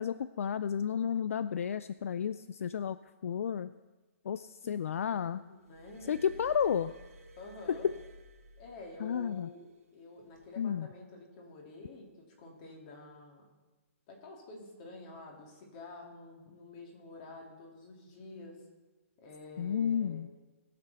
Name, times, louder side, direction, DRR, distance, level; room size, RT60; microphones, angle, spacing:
voice 1, 0.0-3.0 3.2-3.7 4.3-5.4 6.1-6.9 7.7-7.8 9.0-9.5 10.6-10.9 19.6-20.3, left 8 dB, 70° left, 14 dB, 0.4 m, -32 dB
voice 2, 5.1-6.4 7.4-7.9 8.6-13.4 14.1-18.6 19.2-20.2, left 2 dB, 30° left, 0 dB, 2.6 m, -49 dB
Glass, 5.7-9.3 10.2-10.4, equal, 90° right, 2.1 m, -54 dB
20.5 x 6.8 x 4.1 m, 1.2 s
hypercardioid pair, 160°, 8 cm